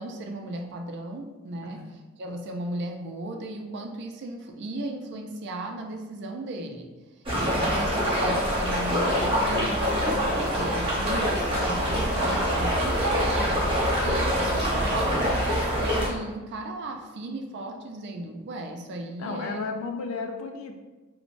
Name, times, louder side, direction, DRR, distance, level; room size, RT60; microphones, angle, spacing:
voice 1, 0.0-1.8 2.2-6.9 7.4-19.6, right 2 dB, 55° right, 3 dB, 0.3 m, -36 dB
sound 1, 7.3-16.1, equal, 25° right, 0.8 m, -25 dB
voice 2, 7.5-8.0 19.2-20.7, left 3 dB, 75° left, 4 dB, 0.4 m, -34 dB
3.1 x 2.1 x 2.5 m, 1.2 s
head